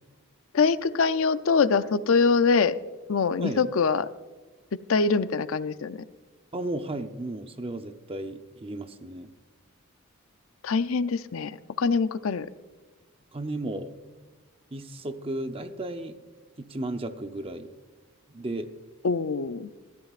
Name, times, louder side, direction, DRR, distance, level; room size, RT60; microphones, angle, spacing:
voice 1, 0.5-2.8 3.1-4.1 4.9-6.0 10.6-12.5 19.0-19.7, left 5 dB, 75° left, 13 dB, 0.5 m, -24 dB
voice 2, 6.5-9.3 13.3-13.9 14.7-16.2 16.6-17.7 18.3-18.7, right 1 dB, 25° right, 8 dB, 0.7 m, -34 dB
20.5 x 13.5 x 2.5 m, 1.3 s
head